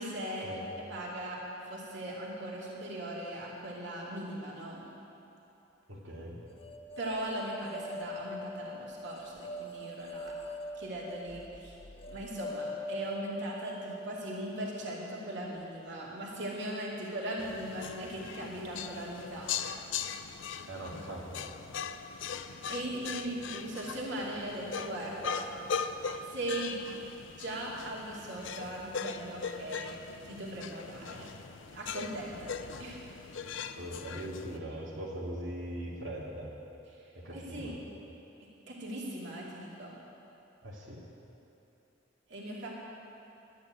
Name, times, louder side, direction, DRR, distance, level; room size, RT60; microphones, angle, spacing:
voice 1, 0.0-4.8 7.0-10.3 10.8-11.7 12.1-19.5 22.7-25.5 26.3-26.8 27.4-29.9 30.2-31.3 31.7-33.0 36.9-37.0 37.3-37.7 38.7-40.0 42.3-42.7, right 1 dB, 70° right, -4 dB, 2.5 m, -39 dB
voice 2, 5.9-6.4 20.7-21.4 33.8-36.5 37.1-37.7 40.6-41.0, right 1 dB, 90° right, -6 dB, 2.4 m, -40 dB
sound 1, 6.6-15.7, left 1 dB, 30° left, 0.7 m, -43 dB
sound 2, 17.4-34.6, left 6 dB, 80° left, 0.6 m, -40 dB
12.0 x 9.2 x 9.3 m, 2.9 s
head